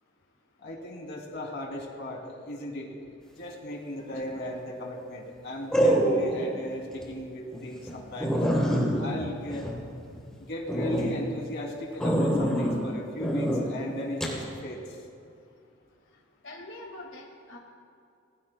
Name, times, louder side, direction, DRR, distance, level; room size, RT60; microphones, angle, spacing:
voice 1, 0.6-8.4 8.9-9.7 10.5-14.8, left 1 dB, 60° left, 0 dB, 2.8 m, -36 dB
sound 1, 4.1-4.5 5.7-6.5 6.9-7.0 7.5-7.6 7.9-8.0 8.2-10.2 10.7-11.1 12.0-12.8 13.2-13.6 14.2-14.4, equal, 5° left, 3.0 m, -25 dB
voice 2, 16.4-17.6, left 1 dB, 75° left, -1 dB, 1.8 m, -43 dB
26.5 x 19.5 x 2.2 m, 2.4 s
head